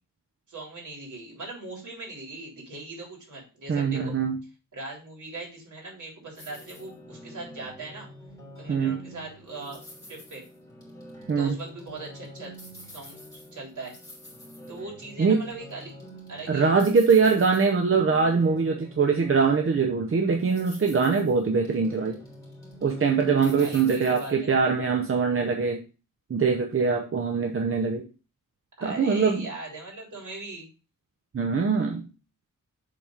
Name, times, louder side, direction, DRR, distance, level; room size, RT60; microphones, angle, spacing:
voice 1, 0.5-4.1 4.7-8.1 8.6-9.8 10.1-10.4 11.3-12.5 12.9-14.0 14.7-16.0 16.3-16.8 23.6-24.6 28.8-30.7, right 2 dB, 65° right, -2 dB, 3.5 m, -40 dB
voice 2, 3.7-4.4 8.7-9.0 11.3-11.6 15.2-15.5 16.5-22.2 22.8-25.8 26.3-28.0 28.8-29.4 31.3-32.1, right 5 dB, 40° right, 3 dB, 0.8 m, -23 dB
sound 1, 6.4-24.3, equal, 10° left, 3.0 m, -46 dB
7.4 x 4.1 x 4.9 m, 0.34 s
wide cardioid pair, 145°, 33 cm